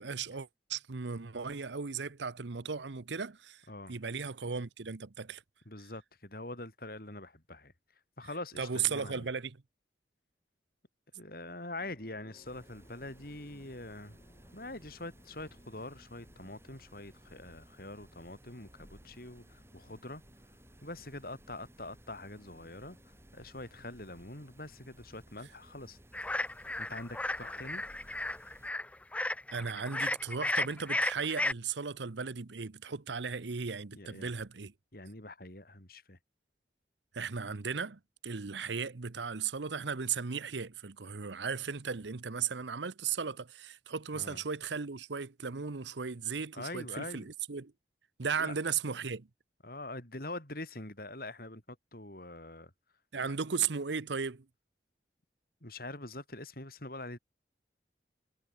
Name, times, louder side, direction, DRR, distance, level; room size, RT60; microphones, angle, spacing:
voice 1, 0.0-3.6 3.9-5.4 8.6-9.6 29.5-34.7 37.1-47.7 48.2-49.3 53.1-54.5, right 6 dB, 85° right, 0.9 m, -36 dB
voice 2, 3.7-4.0 5.7-7.7 8.2-9.3 11.1-14.2 14.5-20.2 20.8-23.0 23.3-26.0 26.8-27.8 33.9-34.3 34.9-36.2 44.1-44.4 46.5-47.3 48.4-48.5 49.6-52.7 53.1-53.3 55.6-57.2, left 2 dB, 55° left, 5.7 m, -44 dB
sound 1, 11.8-27.1, equal, 35° left, 6.5 m, -64 dB
sound 2, 12.4-28.7, right 1 dB, 15° right, 5.4 m, -59 dB
sound 3, 26.1-31.5, left 2 dB, 10° left, 0.3 m, -34 dB
head